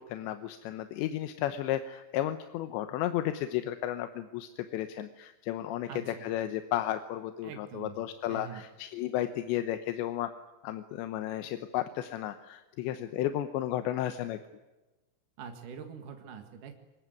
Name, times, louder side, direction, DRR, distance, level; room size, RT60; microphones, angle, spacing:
voice 1, 0.0-10.3 10.6-14.4, left 12 dB, 75° left, 9 dB, 3.0 m, -33 dB
voice 2, 5.9-6.3 7.4-8.0 8.3-8.6 15.4-16.7, right 6 dB, 55° right, 5 dB, 2.7 m, -44 dB
25.0 x 21.5 x 9.4 m, 1.1 s
omnidirectional pair, 5.7 m